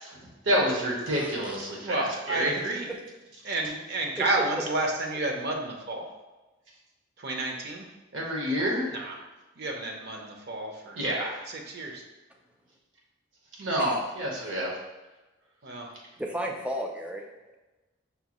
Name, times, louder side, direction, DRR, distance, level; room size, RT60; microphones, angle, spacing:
voice 1, 0.0-2.5 8.1-8.9 11.0-11.4 13.6-14.7, equal, 75° right, -2 dB, 1.0 m, -28 dB
voice 2, 1.1-1.6 2.9-3.0 4.2-4.3 13.8-14.0 16.2-17.2, right 1 dB, 5° right, 1 dB, 0.4 m, -34 dB
voice 3, 1.8-2.9 3.4-6.1 7.2-7.9 8.9-9.2 9.6-11.0 11.5-12.0 15.6-15.9, right 2 dB, 55° right, 1 dB, 0.6 m, -31 dB
5.4 x 2.3 x 2.9 m, 1.1 s
head